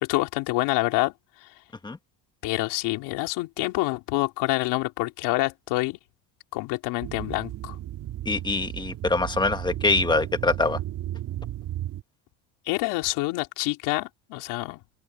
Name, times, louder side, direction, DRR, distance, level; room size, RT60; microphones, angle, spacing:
voice 1, 0.1-1.1 2.4-6.0 6.5-7.8 12.7-14.8, left 21 dB, 70° left, 3.6 m, -27 dB
sound 1, 7.0-12.0, right 13 dB, 50° right, 3.1 m, -34 dB
voice 2, 8.2-10.8, left 3 dB, 10° left, 1.6 m, -24 dB
open air
cardioid pair, 140°, 42 cm